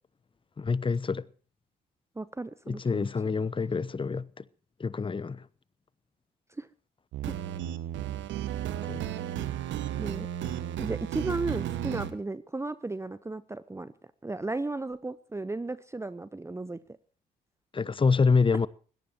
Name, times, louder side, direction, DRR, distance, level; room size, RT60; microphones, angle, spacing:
voice 1, 0.6-1.3 2.7-4.4 4.8-5.5 8.8-9.0 17.7-18.7, left 4 dB, 25° left, 0.9 m, -26 dB
voice 2, 2.2-3.1 6.6-6.7 7.3-7.4 10.0-10.3 10.8-13.9 14.2-16.8, right 2 dB, 15° right, 0.8 m, -34 dB
sound 1, 7.1-12.1, right 11 dB, 65° right, 1.4 m, -33 dB
22.0 x 17.5 x 2.9 m
hypercardioid pair, 50°, 21 cm